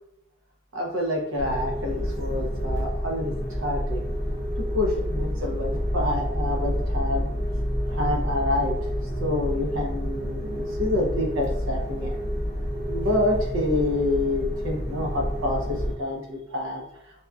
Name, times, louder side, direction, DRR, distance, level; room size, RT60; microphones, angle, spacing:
voice 1, 0.7-4.1 4.6-7.3 7.9-8.8 9.2-12.2 12.9-16.8, left 1 dB, 90° right, 0 dB, 0.7 m, -27 dB
sound 1, 1.4-16.0, equal, 55° right, 1.0 m, -28 dB
2.8 x 2.2 x 2.4 m, 0.82 s
head